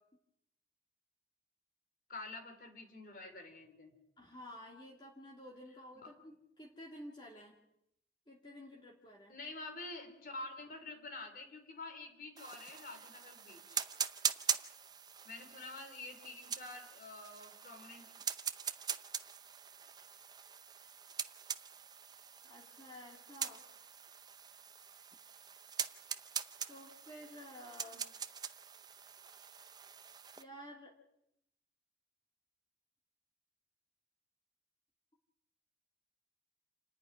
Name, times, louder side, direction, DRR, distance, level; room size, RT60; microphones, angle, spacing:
voice 1, 2.1-3.9 9.3-13.8 15.2-18.1, left 2 dB, 55° left, 5 dB, 3.9 m, -48 dB
voice 2, 4.2-7.6 8.3-9.3 22.4-23.6 26.7-28.0 30.4-30.9, equal, 25° left, -2 dB, 2.6 m, -52 dB
sound 1, 12.4-30.4, right 7 dB, 25° right, 0.7 m, -43 dB
28.5 x 9.8 x 10.0 m, 0.81 s
head